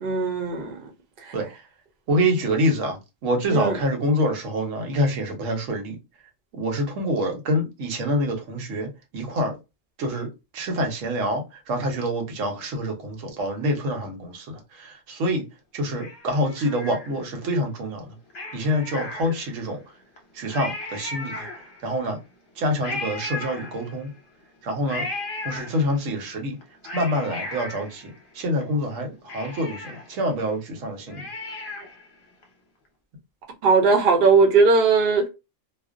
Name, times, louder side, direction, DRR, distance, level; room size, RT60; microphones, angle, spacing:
voice 1, 0.0-0.8 3.5-3.7 33.6-35.3, right 4 dB, 55° right, 0.7 m, -18 dB
voice 2, 1.3-1.7 2.1-6.0 6.5-9.5 10.0-10.3 10.5-15.4 15.7-18.2 18.5-19.8 20.3-22.2 22.5-24.1 24.6-25.1 25.4-26.6 26.9-31.3, equal, 80° right, 1.1 m, -26 dB
Cat, 16.0-17.5 18.3-19.7 20.2-20.3 20.5-22.0 22.8-24.2 24.9-26.1 26.6-28.6 28.9-29.0 29.3-32.1 32.4-32.5, left 2 dB, 50° left, 0.8 m, -36 dB
2.4 x 2.0 x 2.4 m
omnidirectional pair, 1.3 m